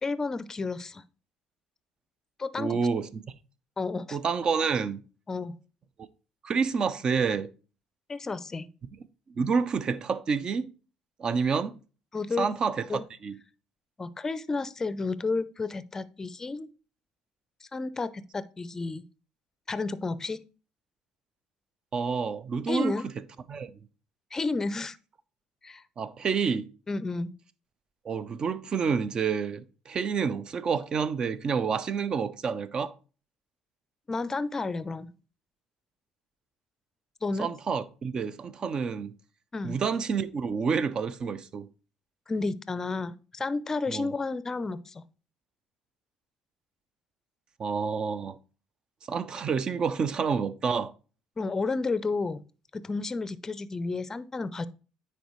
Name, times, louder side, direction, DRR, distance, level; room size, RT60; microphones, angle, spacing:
voice 1, 0.0-1.0 2.4-2.8 3.8-4.2 5.3-5.6 8.1-8.7 12.1-12.5 12.9-13.0 14.0-16.7 17.7-19.0 19.7-20.4 22.7-23.1 24.3-25.0 25.6-25.8 26.9-27.3 34.1-35.1 37.2-37.5 39.5-39.8 42.3-45.0 51.4-52.4 52.7-54.7, left 3 dB, 25° left, 0.5 m, -31 dB
voice 2, 2.6-3.2 4.1-5.0 6.4-7.5 9.4-10.7 11.2-11.7 12.4-12.9 13.2-13.4 21.9-23.0 23.5-23.7 26.0-26.7 28.0-32.9 37.4-39.1 39.6-41.7 43.9-44.1 47.6-48.4 49.1-50.9, right 5 dB, 40° right, 0.5 m, -28 dB
9.3 x 4.2 x 3.1 m
supercardioid pair, 80°, 2 cm